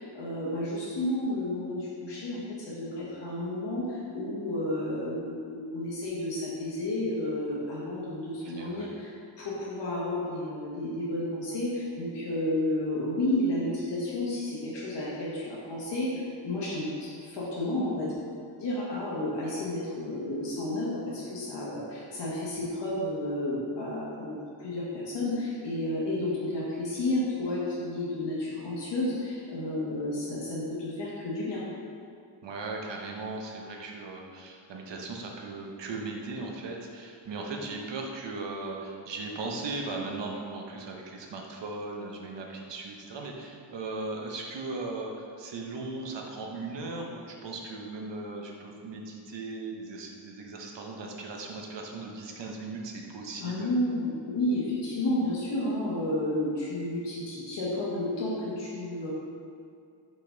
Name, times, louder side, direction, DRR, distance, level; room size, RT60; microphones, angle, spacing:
voice 1, 0.0-18.2 18.6-31.6 53.4-59.1, left 1 dB, 65° left, -6 dB, 1.4 m, -31 dB
voice 2, 8.4-9.0 32.4-53.7, right 3 dB, 65° right, 0 dB, 1.0 m, -38 dB
5.6 x 5.3 x 3.9 m, 2.4 s
wide cardioid pair, 110°, 46 cm